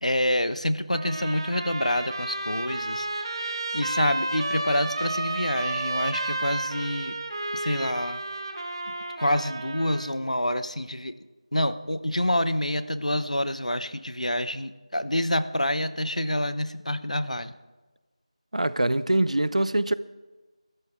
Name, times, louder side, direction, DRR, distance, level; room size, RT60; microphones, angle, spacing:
voice 1, 0.0-7.2 7.5-8.2 9.2-11.2 11.5-17.5, left 1 dB, 90° left, 0.9 m, -27 dB
Trumpet, 0.9-10.1, right 2 dB, 45° right, 1.5 m, -32 dB
voice 2, 18.5-19.9, right 1 dB, 75° right, 0.7 m, -23 dB
22.0 x 13.5 x 3.6 m
figure-of-eight pair, 170°, 4 cm